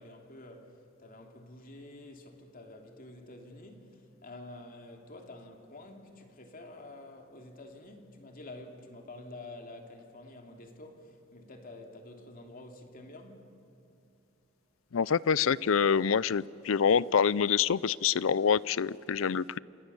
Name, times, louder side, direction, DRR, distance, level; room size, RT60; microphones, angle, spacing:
voice 1, 0.0-13.6, left 2 dB, 45° left, 2.8 m, -49 dB
voice 2, 14.9-19.6, left 6 dB, 75° left, 0.5 m, -26 dB
28.0 x 27.5 x 7.1 m
head